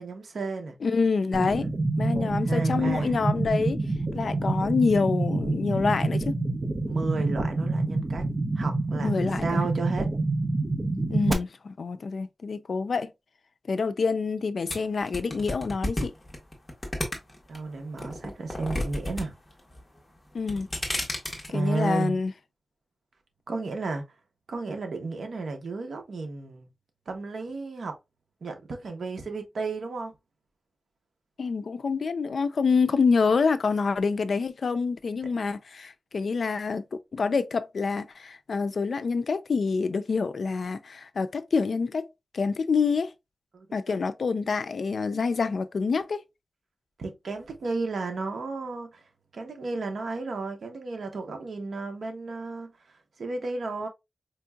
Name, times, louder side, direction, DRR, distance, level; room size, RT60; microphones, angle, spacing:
voice 1, 0.0-0.8 1.3-1.7 2.0-3.2 6.8-8.3 8.6-10.1 17.5-19.3 21.5-22.2 23.5-24.1 24.5-26.7 27.1-28.0 28.4-30.1 43.5-44.1 47.0-49.0 49.3-53.9, right 3 dB, 75° right, 0.8 m, -33 dB
voice 2, 0.8-1.7 2.0-3.8 4.1-6.4 9.0-9.6 11.1-13.1 13.7-16.1 20.3-20.7 21.5-22.3 31.4-42.1 42.3-43.1 43.7-46.2, left 4 dB, 65° left, 0.3 m, -27 dB
sound 1, 1.3-11.3, right 2 dB, 30° right, 0.7 m, -27 dB
sound 2, 14.7-17.6 18.0-19.2 19.5-20.0 20.4-21.5, left 1 dB, 20° left, 1.1 m, -31 dB
4.4 x 2.7 x 2.2 m
wide cardioid pair, 135°, 0 cm